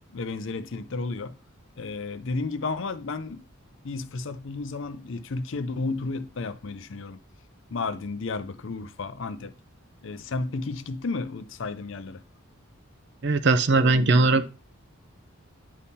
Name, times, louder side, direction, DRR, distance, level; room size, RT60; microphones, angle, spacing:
voice 1, 0.1-1.4 1.8-3.4 3.8-7.2 7.7-9.5 10.0-12.2, left 3 dB, 60° left, 0.5 m, -32 dB
voice 2, 13.2-14.5, right 3 dB, 50° right, 0.6 m, -20 dB
9.8 x 3.6 x 4.1 m
head